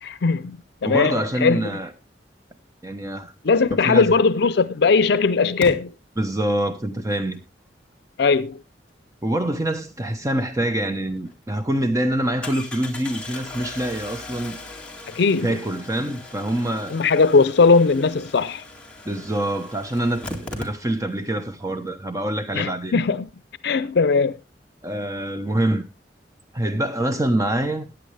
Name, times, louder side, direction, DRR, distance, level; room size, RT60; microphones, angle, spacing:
voice 1, 0.0-1.7 3.4-5.9 8.2-8.6 15.1-15.6 16.9-18.6 22.5-23.3 23.6-24.4, left 4 dB, 65° left, 0.5 m, -19 dB
voice 2, 0.8-1.9 2.8-3.3 3.8-4.1 6.2-7.4 9.2-14.6 15.4-17.0 19.0-23.0 24.8-25.8 26.5-27.9, right 1 dB, 20° right, 0.9 m, -25 dB
Engine starting, 4.1-4.2 5.6-5.7 10.8-10.9 11.3-11.4 12.4-21.2 21.5-21.6 21.8-21.9, left 2 dB, 5° left, 2.1 m, -38 dB
15.0 x 9.9 x 3.3 m
head